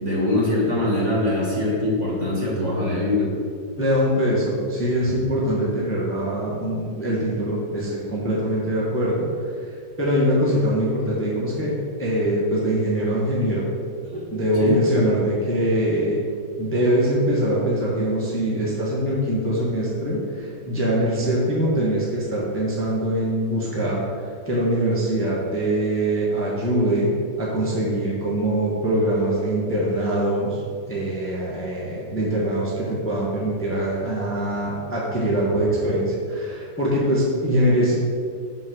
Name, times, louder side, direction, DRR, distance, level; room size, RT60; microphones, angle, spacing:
voice 1, 0.0-3.3 5.0-5.1 14.1-14.8, left 1 dB, 40° right, -5 dB, 1.6 m, -23 dB
voice 2, 3.8-9.3 10.0-13.7 14.3-16.2 16.6-24.1 24.4-27.1 27.4-30.6 30.9-38.0, right 1 dB, 10° left, -6 dB, 1.1 m, -23 dB
5.8 x 4.7 x 6.2 m, 2.3 s
omnidirectional pair, 2.0 m